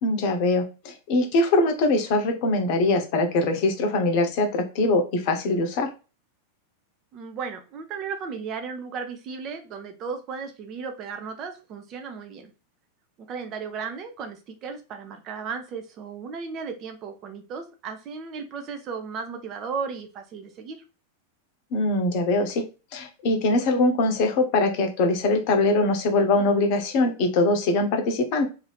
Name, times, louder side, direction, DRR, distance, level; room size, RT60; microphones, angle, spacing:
voice 1, 0.0-5.9 21.7-22.6 22.9-28.4, left 2 dB, 45° left, 6 dB, 0.8 m, -22 dB
voice 2, 7.1-12.5 13.3-20.8, right 5 dB, 35° right, 6 dB, 0.6 m, -35 dB
2.7 x 2.7 x 3.3 m, 0.32 s
figure-of-eight pair, 90°, 0 cm